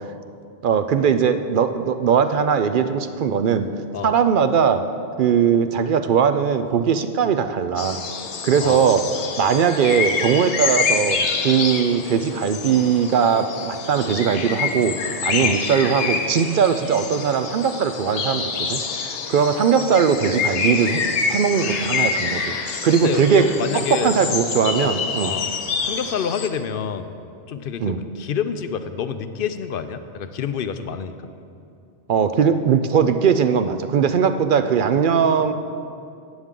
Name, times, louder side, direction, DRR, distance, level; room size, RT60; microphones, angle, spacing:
voice 1, 0.6-3.7 4.0-4.8 5.2-8.0 8.4-9.1 9.4-14.9 15.2-21.0 21.3-22.6 22.8-23.5 23.9-25.3 27.8-28.0 32.1-35.5, right 7 dB, 60° right, 9 dB, 0.6 m, -19 dB
sound 1, 7.8-26.5, left 5 dB, 90° left, 1.1 m, -27 dB
voice 2, 22.9-24.3 24.8-25.0 25.2-25.5 25.8-27.1 27.5-31.2, left 7 dB, 60° left, 10 dB, 0.7 m, -28 dB
14.0 x 9.5 x 3.7 m, 2.5 s
omnidirectional pair, 1.1 m